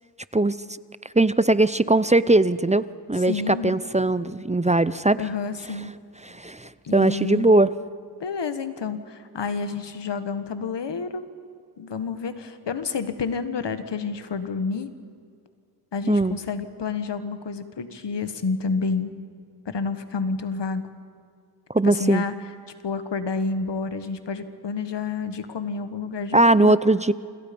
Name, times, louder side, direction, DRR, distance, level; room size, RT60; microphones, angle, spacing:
voice 1, 1.2-5.2 6.3-7.7 16.1-16.4 21.7-22.2 26.3-27.1, right 2 dB, 15° right, 16 dB, 0.6 m, -20 dB
voice 2, 3.1-3.7 5.2-5.9 6.8-7.5 8.2-11.2 11.8-14.9 15.9-19.1 19.6-20.8 21.8-22.3 22.8-26.8, left 4 dB, 85° left, 10 dB, 1.6 m, -29 dB
28.5 x 26.5 x 5.3 m, 2.3 s
wide cardioid pair, 80°, 41 cm